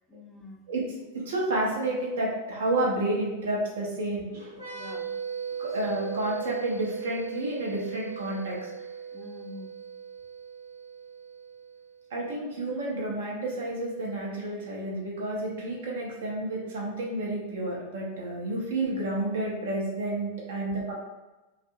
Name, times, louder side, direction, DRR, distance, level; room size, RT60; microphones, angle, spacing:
voice 1, 0.1-0.7 4.7-5.1 9.1-9.7 20.5-20.8, left 2 dB, 10° left, -1 dB, 0.5 m, -46 dB
voice 2, 1.1-4.5 5.6-8.7 12.1-20.9, right 1 dB, 60° right, -4 dB, 0.8 m, -30 dB
sound 1, 4.5-12.0, right 7 dB, 85° right, 1.1 m, -38 dB
2.6 x 2.5 x 2.5 m, 1.1 s
figure-of-eight pair, 90°, 0 cm